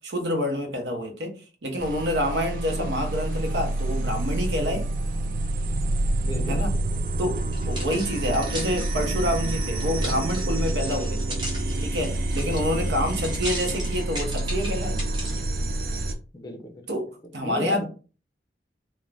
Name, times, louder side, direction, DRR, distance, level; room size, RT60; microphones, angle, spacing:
voice 1, 0.0-4.9 6.5-6.7 7.2-11.4 11.8-15.0 16.9-17.9, equal, 85° right, 0.7 m, -28 dB
sound 1, 1.8-16.1, right 1 dB, 50° right, 0.3 m, -28 dB
voice 2, 6.2-6.7 12.6-12.9 16.3-16.9 17.4-17.8, left 1 dB, 25° left, 0.5 m, -35 dB
sound 2, 7.4-15.4 16.0-16.1, right 1 dB, 25° right, 0.8 m, -37 dB
2.4 x 2.1 x 3.2 m
head